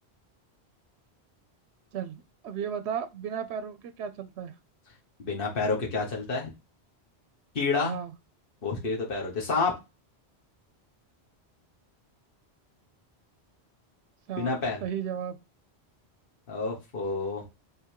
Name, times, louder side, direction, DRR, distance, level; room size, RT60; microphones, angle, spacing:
voice 1, 1.9-4.5 7.8-8.1 14.3-14.5 14.8-15.4, right 8 dB, 80° right, 9 dB, 0.8 m, -34 dB
voice 2, 5.2-6.5 7.5-7.9 8.6-9.7 14.3-14.8 16.5-17.4, left 4 dB, 55° left, -2 dB, 1.5 m, -29 dB
3.6 x 3.3 x 4.4 m, 0.25 s
omnidirectional pair, 1.1 m